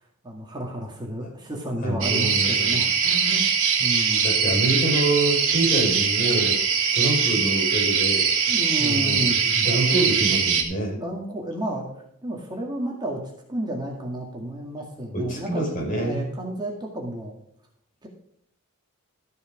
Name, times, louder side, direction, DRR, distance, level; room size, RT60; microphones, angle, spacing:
voice 1, 0.2-3.5 3.8-4.3 8.5-9.4 11.0-11.9 12.2-13.2 13.5-17.3 18.0-18.1, right 1 dB, 20° right, -1 dB, 2.0 m, -31 dB
voice 2, 1.8-2.8 4.2-6.6 6.9-11.0 15.1-16.3, right 2 dB, 40° left, -2 dB, 5.4 m, -26 dB
sound 1, 2.0-10.6, right 6 dB, 60° right, 2.4 m, -22 dB
13.5 x 6.9 x 5.2 m, 0.69 s
head